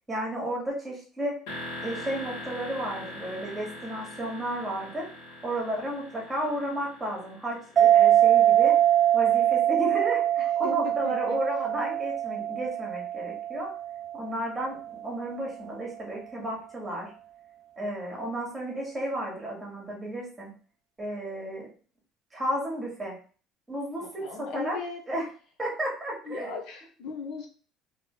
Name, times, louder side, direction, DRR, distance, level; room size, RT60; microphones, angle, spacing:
voice 1, 0.1-1.3 1.8-5.1 5.4-8.7 9.1-13.7 14.1-14.8 15.0-17.1 17.8-20.5 21.0-21.7 22.3-23.1 23.7-24.1 24.4-24.8 25.1-25.2 25.6-26.6, right 1 dB, 10° right, -2 dB, 1.9 m, -33 dB
sound 1, 1.5-9.2, left 1 dB, 85° left, 1.7 m, -42 dB
sound 2, 7.8-14.8, right 11 dB, 30° right, 0.3 m, -23 dB
voice 2, 10.6-11.4 24.0-25.0 26.2-27.5, left 5 dB, 65° left, 3 dB, 0.9 m, -38 dB
3.8 x 3.2 x 3.2 m, 0.39 s
cardioid pair, 135°, 0 cm